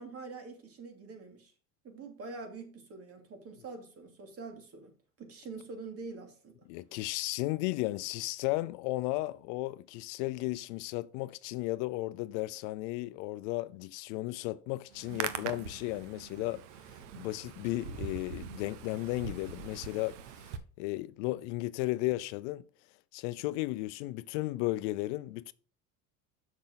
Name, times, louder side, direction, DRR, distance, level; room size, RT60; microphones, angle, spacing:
voice 1, 0.0-1.5 1.8-4.9 5.2-6.7, right 3 dB, 40° right, 2.6 m, -45 dB
voice 2, 6.7-16.6 17.2-20.5 20.8-22.6 23.1-25.5, left 19 dB, 80° left, 0.6 m, -34 dB
Hands, 14.9-20.6, right 9 dB, 90° right, 1.0 m, -42 dB
7.2 x 6.5 x 3.9 m
supercardioid pair, 110°, 36 cm